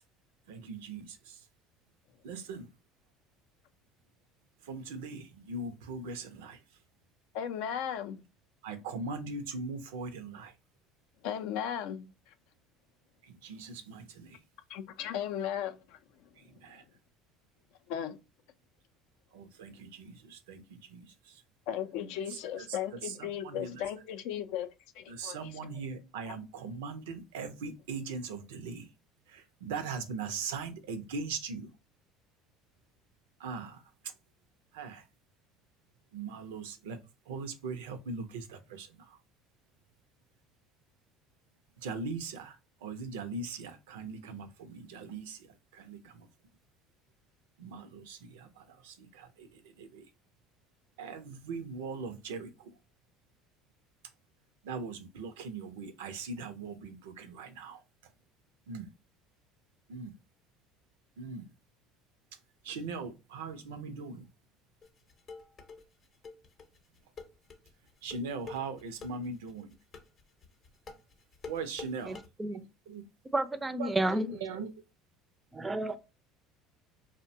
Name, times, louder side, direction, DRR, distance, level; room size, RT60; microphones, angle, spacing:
voice 1, 0.5-1.4 2.2-2.7 4.6-6.6 8.6-10.5 13.2-14.4 16.4-16.8 19.3-21.4 23.0-23.8 25.1-28.9 29.3-31.7 33.4-33.8 34.7-35.0 36.1-37.0 37.3-39.2 41.8-45.5 45.7-46.3 47.6-50.1 51.0-52.7 54.6-57.8 58.7-58.9 59.9-60.1 61.2-61.4 62.6-64.2 68.0-69.7 71.5-72.2 72.5-73.1 73.8-74.7, right 4 dB, 85° right, 0.4 m, -40 dB
voice 2, 7.3-8.2 11.2-12.1 14.7-16.0 17.9-18.2 21.7-24.7 25.0-25.4 26.3-26.4, left 9 dB, 75° left, 0.4 m, -36 dB
sound 1, 64.8-72.3, left 4 dB, 45° left, 0.7 m, -47 dB
voice 3, 72.1-72.6 73.3-74.2 75.5-76.0, right 2 dB, 15° right, 0.4 m, -31 dB
2.6 x 2.1 x 2.6 m
supercardioid pair, 90°, 0 cm